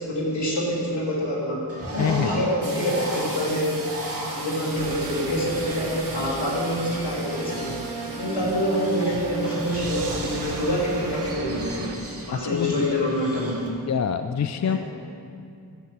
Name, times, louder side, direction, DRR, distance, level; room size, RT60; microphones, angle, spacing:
voice 1, 0.0-1.7 1.9-3.8 4.3-7.8 8.2-11.9 12.3-13.6 14.6-14.8, equal, 75° left, -5 dB, 3.2 m, -26 dB
Bird, 1.7-13.7, right 1 dB, 35° right, 2.4 m, -38 dB
voice 2, 2.0-2.4 12.4-12.9 13.9-14.8, left 7 dB, 45° left, 9 dB, 0.5 m, -25 dB
sound 1, 2.6-11.3, right 2 dB, 55° right, 2.4 m, -41 dB
sound 2, 4.7-12.0, right 4 dB, 85° right, 1.1 m, -34 dB
12.5 x 7.8 x 6.0 m, 2.4 s
cardioid pair, 40°, 41 cm